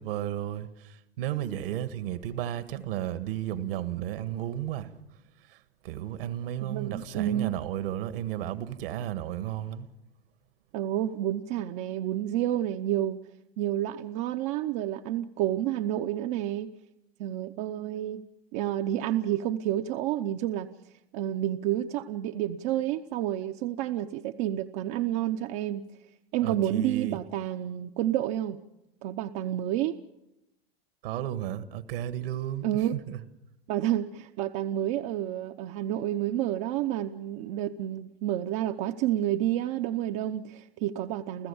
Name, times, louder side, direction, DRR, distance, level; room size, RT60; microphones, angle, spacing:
voice 1, 0.0-4.9 5.5-9.9 26.4-27.2 31.0-33.2, right 12 dB, 65° right, 1.7 m, -33 dB
voice 2, 6.6-7.6 10.7-13.2 13.6-16.7 17.2-18.2 18.5-20.7 21.1-25.8 26.3-28.6 29.0-30.0 32.6-32.9 33.7-41.5, right 12 dB, 50° right, 0.9 m, -29 dB
29.5 x 14.5 x 7.1 m
hypercardioid pair, 115°, 30 cm